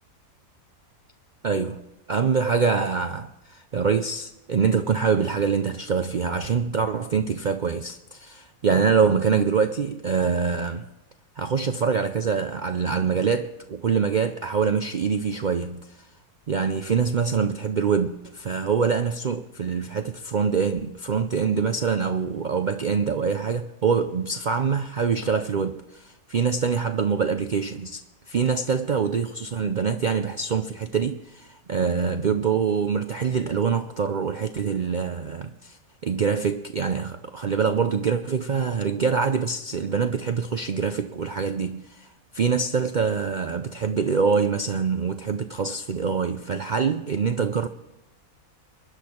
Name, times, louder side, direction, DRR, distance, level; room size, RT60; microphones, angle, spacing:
voice 1, 1.4-1.8 2.1-10.8 11.4-16.1 16.5-28.0 28.3-42.1 42.3-47.7, right 6 dB, 75° right, 0.4 m, -25 dB
22.5 x 10.5 x 4.4 m
omnidirectional pair, 1.6 m